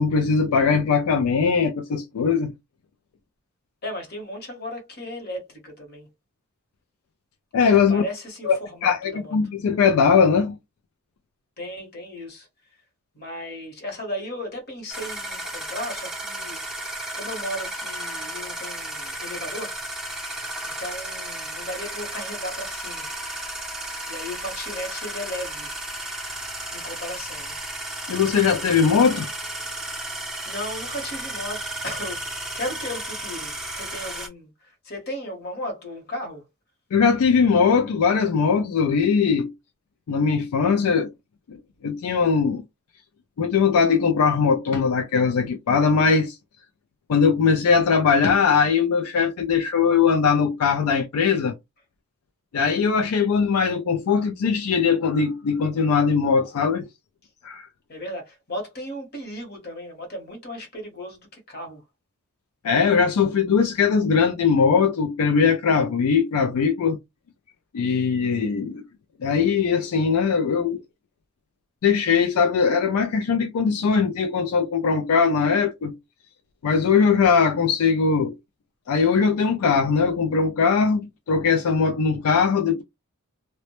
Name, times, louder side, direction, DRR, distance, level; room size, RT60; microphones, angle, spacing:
voice 1, 0.0-2.5 7.5-8.0 8.4-8.6 8.8-10.6 28.1-29.3 36.9-39.5 40.1-41.1 41.5-41.6 41.8-42.6 43.4-46.4 47.1-51.5 52.5-56.9 57.4-57.7 62.6-67.0 67.7-68.8 69.2-70.8 71.8-75.9 76.6-78.3 78.9-82.8, left 5 dB, 75° left, 0.4 m, -20 dB
voice 2, 3.8-6.1 7.9-9.3 11.6-12.5 13.1-19.8 20.6-23.1 24.1-25.7 26.7-27.6 30.5-36.4 57.9-61.8, left 1 dB, 45° left, 0.9 m, -35 dB
sound 1, 14.9-34.3, right 1 dB, 5° right, 0.5 m, -33 dB
2.1 x 2.1 x 2.8 m
head